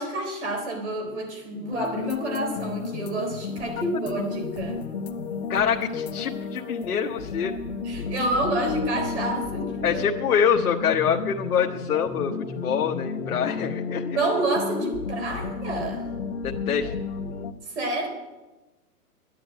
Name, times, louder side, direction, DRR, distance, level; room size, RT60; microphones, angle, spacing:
voice 1, 0.0-4.8 7.9-10.0 14.1-16.1 17.8-18.1, right 1 dB, 45° right, 3 dB, 4.1 m, -28 dB
sound 1, 1.7-17.5, left 5 dB, 45° left, 1.0 m, -33 dB
voice 2, 5.5-7.5 9.8-14.2 16.4-16.9, left 7 dB, 65° left, 2 dB, 1.1 m, -25 dB
10.5 x 10.0 x 9.4 m, 1.1 s
hypercardioid pair, 180°, 47 cm